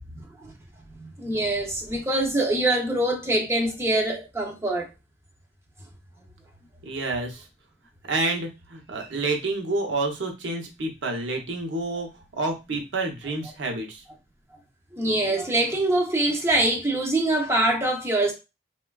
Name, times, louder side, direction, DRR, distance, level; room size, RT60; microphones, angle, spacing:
voice 1, 1.0-4.9 14.9-18.3, right 1 dB, 15° right, 0.5 m, -24 dB
voice 2, 6.8-7.5 8.1-14.0, right 2 dB, 65° right, 0.7 m, -29 dB
3.2 x 2.2 x 2.2 m
head